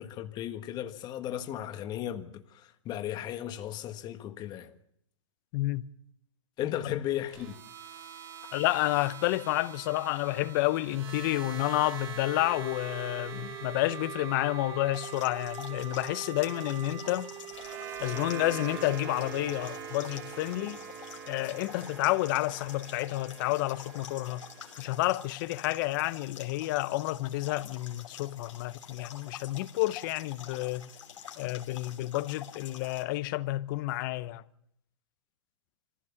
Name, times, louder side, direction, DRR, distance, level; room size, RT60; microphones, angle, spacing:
voice 1, 0.0-4.7 6.6-7.6, left 11 dB, 25° left, 1.6 m, -36 dB
voice 2, 5.5-5.9 8.5-17.3 18.0-20.8 21.3-24.4 24.8-30.9 31.4-34.4, left 18 dB, 45° left, 0.9 m, -30 dB
sound 1, 7.3-25.4, right 7 dB, 50° right, 3.5 m, -45 dB
Wind instrument woodwind instrument, 12.3-18.9, right 10 dB, 30° right, 0.9 m, -43 dB
sound 2, 14.9-33.0, left 8 dB, 85° left, 3.1 m, -47 dB
25.0 x 15.5 x 7.2 m
hypercardioid pair, 140°, 16 cm